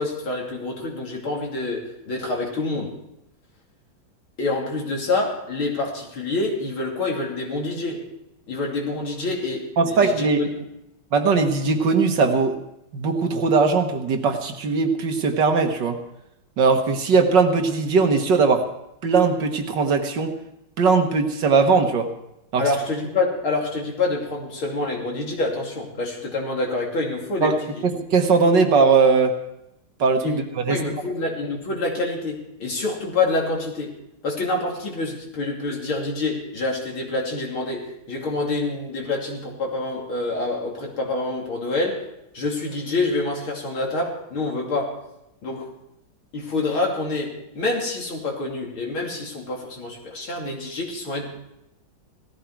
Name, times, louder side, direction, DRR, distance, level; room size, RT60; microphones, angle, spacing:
voice 1, 0.0-3.0 4.4-8.1 8.5-10.7 22.6-27.8 30.2-34.0 34.2-42.1 42.3-45.0 45.4-45.7 46.3-51.4, left 3 dB, 80° left, -1 dB, 3.6 m, -27 dB
voice 2, 9.8-10.4 11.1-12.6 12.9-16.0 16.6-18.7 19.0-20.3 20.8-22.1 22.5-22.6 27.4-27.5 27.8-29.4 30.0-30.8, right 4 dB, 60° right, 5 dB, 1.9 m, -19 dB
17.5 x 14.0 x 4.7 m, 0.84 s
omnidirectional pair, 2.3 m